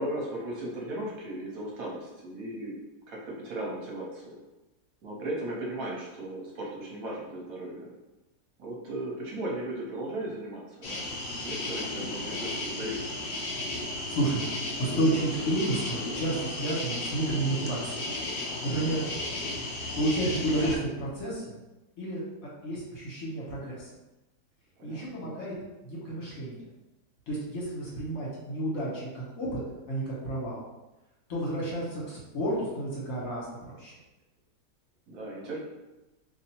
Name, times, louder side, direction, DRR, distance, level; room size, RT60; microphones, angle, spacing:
voice 1, 0.0-2.7 3.1-4.3 5.0-7.9 8.6-13.1 24.8-25.4 35.1-35.6, right 1 dB, 65° right, -3 dB, 1.1 m, -36 dB
sound 1, 10.8-20.8, left 2 dB, 85° left, 0.4 m, -34 dB
voice 2, 14.1-14.4 14.8-18.1 18.6-19.0 19.9-21.6 22.0-22.2 22.6-23.9 24.8-25.5 25.8-26.7 27.3-29.6 29.9-30.6 31.3-33.9, right 1 dB, 60° left, -6 dB, 1.6 m, -31 dB
2.8 x 2.7 x 4.3 m, 1.0 s
omnidirectional pair, 1.8 m